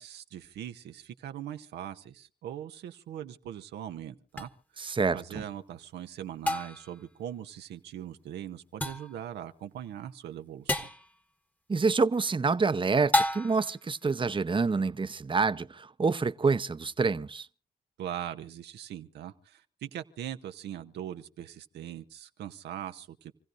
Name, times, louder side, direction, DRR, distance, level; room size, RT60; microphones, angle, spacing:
voice 1, 0.0-4.5 4.8-10.9 18.0-23.3, right 10 dB, 80° right, 0.8 m, -41 dB
sound 1, 4.4-4.5 6.5-7.0 8.8-9.2 10.7-11.1 13.1-13.8, left 1 dB, 10° left, 1.3 m, -29 dB
voice 2, 4.8-5.4 11.7-17.5, right 4 dB, 30° right, 0.8 m, -27 dB
28.0 x 15.5 x 2.6 m
supercardioid pair, 45°, 17 cm